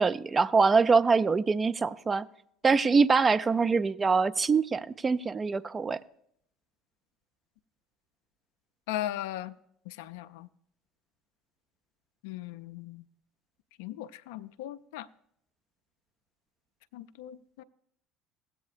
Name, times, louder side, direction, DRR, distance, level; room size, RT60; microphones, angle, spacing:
voice 1, 0.0-2.2 2.6-6.0, right 4 dB, 25° right, 0.4 m, -24 dB
voice 2, 8.9-9.5 9.9-10.5 12.2-13.0 13.8-15.1 16.9-17.6, left 13 dB, 70° left, 0.4 m, -38 dB
16.5 x 8.3 x 2.4 m
hypercardioid pair, 65°, 0 cm